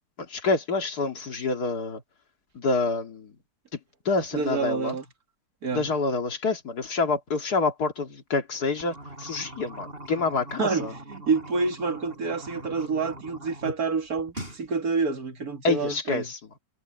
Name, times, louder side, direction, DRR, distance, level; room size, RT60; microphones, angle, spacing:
voice 1, 0.2-2.0 2.5-3.3 4.0-5.0 5.7-10.9 15.6-16.4, left 3 dB, 55° left, 2.7 m, -27 dB
voice 2, 4.3-5.0 5.6-5.9 10.6-16.3, right 4 dB, 55° right, 2.5 m, -28 dB
sound 1, 8.7-13.8 14.1-14.6, right 1 dB, 30° right, 8.3 m, -42 dB
omnidirectional pair, 2.0 m